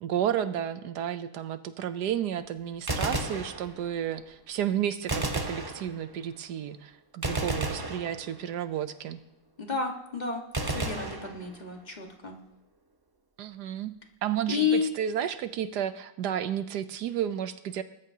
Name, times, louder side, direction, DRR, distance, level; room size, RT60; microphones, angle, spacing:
voice 1, 0.0-9.2 13.4-14.0 14.2-17.8, right 10 dB, 70° right, 12 dB, 1.1 m, -32 dB
Gunshot gunfire, 2.7-4.1 5.1-6.3 7.2-8.7 10.5-11.9, right 2 dB, 30° right, 0.4 m, -33 dB
voice 2, 9.6-12.4 14.5-14.9, left 5 dB, 25° left, 2 dB, 1.4 m, -30 dB
20.0 x 13.0 x 2.8 m, 0.80 s
omnidirectional pair, 2.1 m